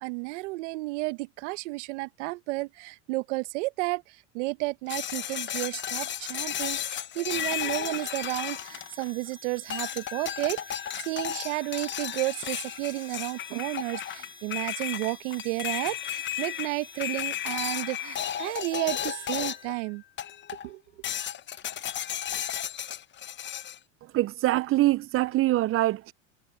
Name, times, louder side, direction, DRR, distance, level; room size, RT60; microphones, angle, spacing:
voice 1, 0.0-4.0 4.3-10.8 11.1-20.0 20.6-20.8, right 23 dB, 70° right, 1.1 m, -32 dB
sound 1, 4.9-9.3 9.7-19.8 20.2-20.7 21.0-23.8, left 10 dB, 30° left, 1.0 m, -34 dB
Harmonica, 7.3-19.7, left 2 dB, 10° left, 2.1 m, -50 dB
voice 2, 24.1-26.1, right 16 dB, 35° right, 0.6 m, -24 dB
supercardioid pair, 105°, 36 cm